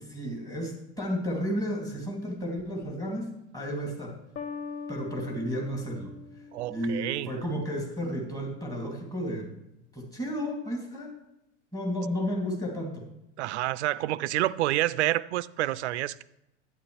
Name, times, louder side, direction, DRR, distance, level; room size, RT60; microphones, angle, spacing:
voice 1, 0.0-4.1 4.9-6.4 6.7-9.5 9.9-11.1 11.7-13.1, equal, 10° left, 2.4 m, -32 dB
sound 1, 4.4-7.2, left 5 dB, 35° left, 0.9 m, -41 dB
voice 2, 6.5-7.3 13.4-16.2, right 15 dB, 65° right, 0.5 m, -28 dB
11.0 x 9.3 x 3.2 m
figure-of-eight pair, 80°, 36 cm